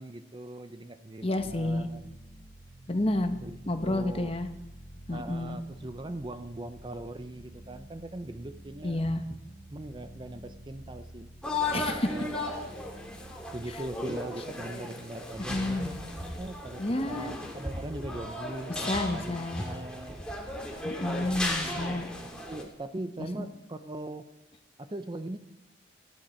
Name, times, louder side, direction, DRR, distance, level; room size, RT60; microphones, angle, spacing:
voice 1, 0.0-2.0 3.4-4.3 5.1-9.1 9.7-11.3 12.1-12.4 13.5-20.2 21.3-22.0 22.5-24.3 24.8-25.4, right 1 dB, 25° right, 10 dB, 0.6 m, -40 dB
voice 2, 1.2-1.9 2.9-3.4 3.7-4.5 5.1-5.6 8.8-9.2 11.7-12.1 15.5-15.9 16.8-17.4 18.7-19.6 20.8-22.1 23.4-23.5, left 1 dB, 30° left, 7 dB, 1.1 m, -30 dB
sound 1, 1.4-13.6, right 1 dB, 55° left, 4.3 m, -49 dB
sound 2, 11.4-22.6, left 2 dB, 5° left, 2.6 m, -36 dB
19.0 x 15.0 x 4.4 m, 0.99 s
head